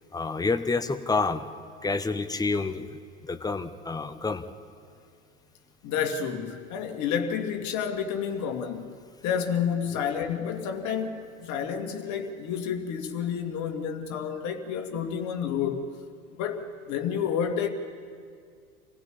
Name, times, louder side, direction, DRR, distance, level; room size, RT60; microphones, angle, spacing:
voice 1, 0.1-1.5 1.8-2.9 3.2-4.4 9.9-10.0, left 3 dB, 10° left, 1.1 m, -28 dB
voice 2, 5.8-8.9 9.2-15.9 16.4-17.7, left 7 dB, 40° left, 2.4 m, -30 dB
27.0 x 16.0 x 8.6 m
figure-of-eight pair, 80°, 42 cm